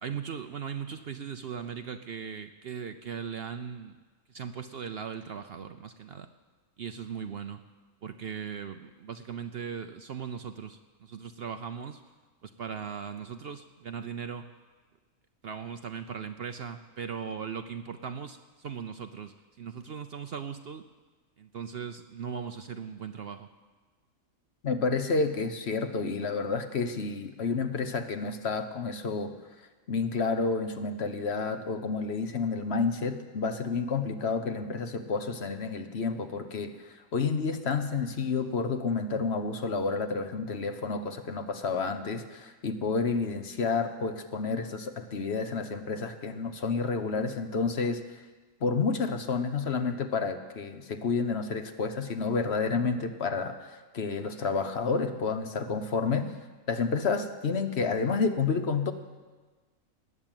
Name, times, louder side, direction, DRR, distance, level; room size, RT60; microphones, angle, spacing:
voice 1, 0.0-4.0 4.3-6.3 6.8-7.6 8.0-12.0 12.4-14.5 15.4-20.8 21.4-23.5, right 7 dB, 55° right, 8 dB, 0.7 m, -38 dB
voice 2, 24.6-29.3 29.9-48.0 48.6-56.3 56.7-58.9, left 4 dB, 55° left, 8 dB, 1.1 m, -30 dB
19.5 x 7.4 x 9.0 m, 1.3 s
omnidirectional pair, 1.4 m